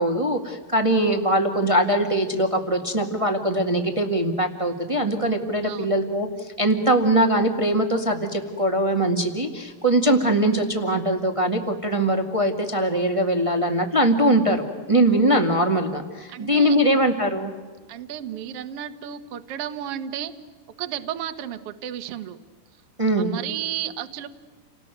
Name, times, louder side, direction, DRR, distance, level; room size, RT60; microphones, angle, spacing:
voice 1, 0.0-17.5 23.0-23.3, right 1 dB, 25° right, 4 dB, 0.6 m, -22 dB
voice 2, 16.3-17.0 17.9-20.3 20.8-22.4 23.2-24.3, right 10 dB, 60° right, 10 dB, 1.6 m, -33 dB
30.0 x 19.5 x 9.2 m, 1.4 s
omnidirectional pair, 4.4 m